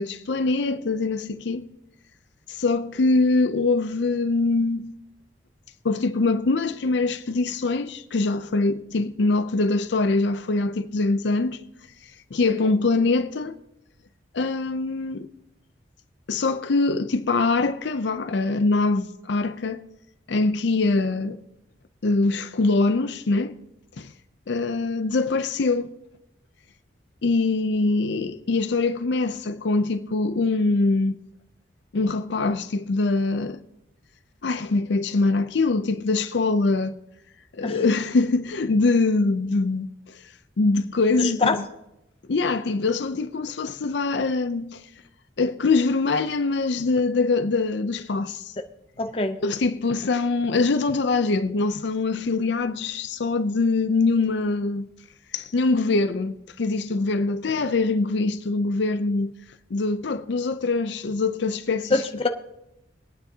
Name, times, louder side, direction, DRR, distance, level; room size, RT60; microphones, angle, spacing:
voice 1, 0.0-1.6 2.5-4.9 5.8-11.6 12.3-13.5 14.3-15.3 16.3-19.9 20.3-21.4 22.0-23.5 24.0-24.1 24.5-25.9 27.2-31.2 31.9-33.6 34.4-36.9 37.5-39.9 40.6-41.6 42.3-44.8 45.4-48.5 49.4-54.9 55.3-59.3 59.7-62.0, left 3 dB, 65° left, 0.5 m, -23 dB
voice 2, 41.2-41.5 49.0-49.4 61.9-62.3, left 3 dB, 30° left, 0.7 m, -23 dB
23.0 x 9.0 x 2.8 m
head